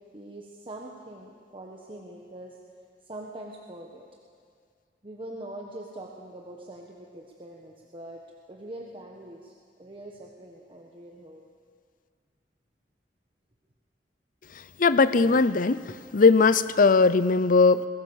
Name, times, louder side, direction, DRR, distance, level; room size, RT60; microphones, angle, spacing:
voice 1, 0.1-2.6 3.0-4.0 5.0-8.2 8.5-9.5 9.8-11.4, right 1 dB, 30° right, -1 dB, 1.5 m, -43 dB
voice 2, 14.8-15.8 16.1-17.9, left 4 dB, 50° left, 14 dB, 0.7 m, -19 dB
22.0 x 17.0 x 7.2 m, 2.1 s
head